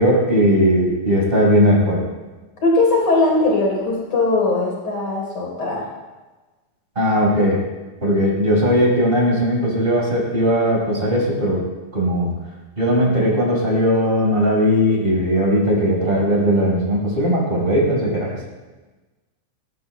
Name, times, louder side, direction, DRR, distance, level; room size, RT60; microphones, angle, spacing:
voice 1, 0.0-2.0 6.9-7.6 8.0-11.6 11.9-12.3 12.8-18.4, equal, 15° right, -5 dB, 5.1 m, -18 dB
voice 2, 2.6-5.9, left 2 dB, 35° left, -1 dB, 4.7 m, -19 dB
19.5 x 18.5 x 2.2 m, 1.2 s
omnidirectional pair, 4.2 m